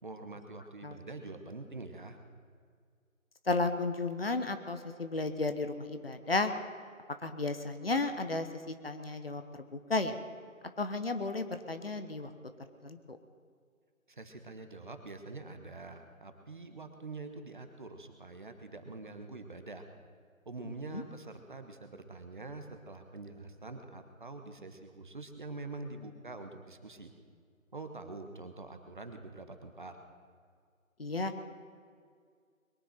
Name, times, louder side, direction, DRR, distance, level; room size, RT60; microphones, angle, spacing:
voice 1, 0.0-2.2 14.1-19.8 20.4-27.1 27.7-30.0, right 3 dB, 35° right, 6 dB, 1.3 m, -45 dB
voice 2, 3.4-6.5 7.2-10.2 10.8-12.3 12.8-13.2 20.9-21.0 31.0-31.3, left 3 dB, 45° left, 8 dB, 1.1 m, -33 dB
22.0 x 9.9 x 5.9 m, 2.1 s
figure-of-eight pair, 160°, 41 cm